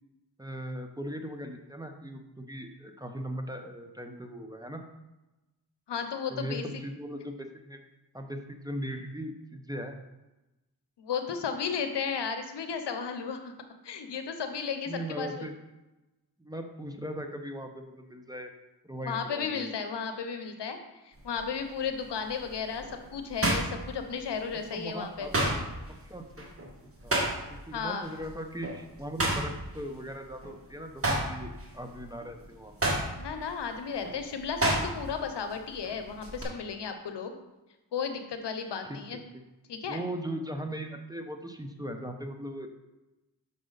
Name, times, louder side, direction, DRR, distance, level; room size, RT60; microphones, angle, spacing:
voice 1, 0.4-4.8 6.3-7.8 8.1-9.9 14.9-15.5 16.4-18.5 18.8-19.7 24.7-25.6 26.0-26.4 27.0-32.9 39.3-39.4 39.9-42.7, equal, 10° right, 5 dB, 0.9 m, -39 dB
voice 2, 5.9-6.6 11.0-13.5 13.8-15.5 19.0-25.3 27.7-28.1 33.2-37.3 37.9-39.2 39.7-40.0, left 6 dB, 75° left, 7 dB, 0.8 m, -34 dB
sound 1, 21.2-21.5 22.0-24.5 24.8-27.7 28.0-28.3 28.6-30.6 30.9-35.3 35.5-36.4, right 1 dB, 30° right, 1.7 m, -31 dB
6.2 x 5.6 x 4.0 m, 1.0 s
cardioid pair, 45°, 42 cm